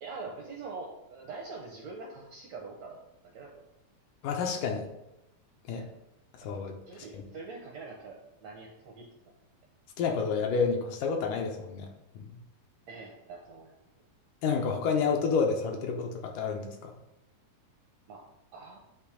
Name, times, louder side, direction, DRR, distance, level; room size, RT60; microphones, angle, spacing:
voice 1, 0.0-3.0 3.3-3.6 5.7-5.9 6.9-9.1 12.9-13.8 18.1-18.2 18.5-18.8, right 3 dB, 75° right, -1 dB, 1.6 m, -44 dB
voice 2, 4.2-4.9 5.7-5.9 6.3-7.2 10.0-11.9 12.2-12.4 14.4-16.9, left 5 dB, 80° left, 2 dB, 2.0 m, -30 dB
8.4 x 3.0 x 4.9 m, 0.87 s
omnidirectional pair, 4.0 m